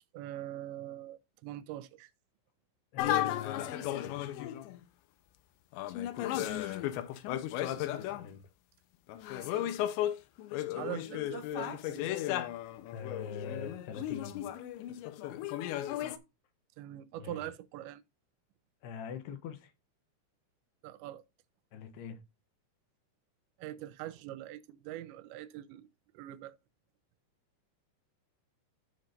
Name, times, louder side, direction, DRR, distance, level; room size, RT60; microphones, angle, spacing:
voice 1, 0.1-2.1 6.4-6.8 9.5-9.9 10.8-12.1 16.8-18.0 20.8-21.2 23.6-25.9 26.1-26.6, right 13 dB, 85° right, 2.9 m, -43 dB
voice 2, 2.9-4.2 8.0-8.4 12.8-14.5 17.2-17.4 18.8-19.7 21.7-22.2, left 6 dB, 75° left, 2.9 m, -43 dB
sound 1, 3.0-4.8 5.7-8.3 9.1-16.2, left 13 dB, 90° left, 3.1 m, -35 dB
14.5 x 6.0 x 2.6 m
omnidirectional pair, 5.2 m